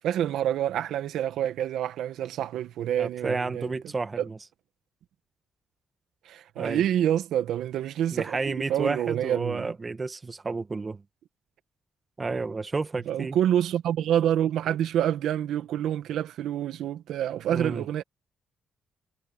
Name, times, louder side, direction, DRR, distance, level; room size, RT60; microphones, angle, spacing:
voice 1, 0.0-3.8 4.2-4.3 6.2-9.7 13.1-18.0, right 10 dB, 80° right, 1.3 m, -27 dB
voice 2, 3.0-4.4 6.6-6.8 8.1-11.0 12.2-13.4 17.5-17.8, right 3 dB, 25° right, 1.9 m, -31 dB
cardioid pair, 90°, 0 cm